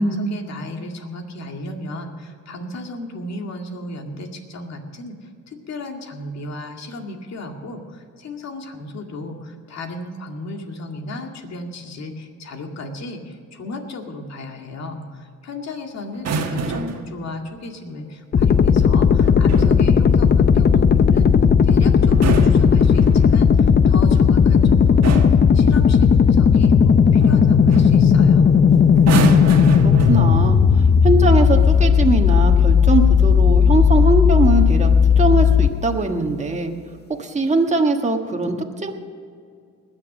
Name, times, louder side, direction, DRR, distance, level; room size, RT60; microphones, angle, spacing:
voice 1, 0.0-21.3 21.6-25.2 25.5-28.6, left 2 dB, 60° left, 3 dB, 2.2 m, -34 dB
sound 1, 16.1-17.1 19.2-19.8 22.0-23.4 24.4-24.6 25.0-25.5 27.2-27.4 27.7-28.0 28.9-30.6 31.5-31.8, right 4 dB, 60° right, 1.5 m, -26 dB
sound 2, 18.3-35.7, left 6 dB, 35° left, 0.7 m, -14 dB
voice 2, 29.3-36.7 37.2-38.9, right 2 dB, 25° right, 3 dB, 1.4 m, -21 dB
20.5 x 7.3 x 6.2 m, 2.2 s
cardioid pair, 90°, 30 cm